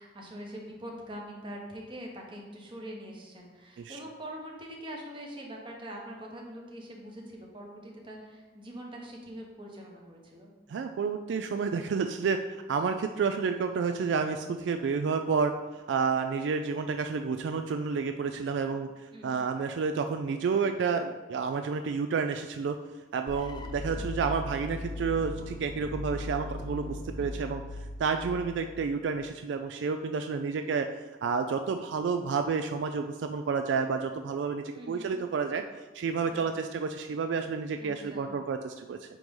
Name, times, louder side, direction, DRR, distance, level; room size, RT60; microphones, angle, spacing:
voice 1, 0.0-10.5 19.1-19.4 23.9-24.1 27.2-27.3 34.7-35.2 36.3-36.5 37.8-38.3, equal, 30° right, -1 dB, 1.1 m, -43 dB
voice 2, 10.7-15.5 15.9-22.8 23.1-27.6 28.0-30.9 31.2-35.6 35.9-39.0, right 5 dB, 75° right, 7 dB, 0.3 m, -30 dB
sound 1, 23.3-29.2, left 2 dB, 25° left, 0.3 m, -39 dB
9.0 x 3.1 x 3.7 m, 1.3 s
head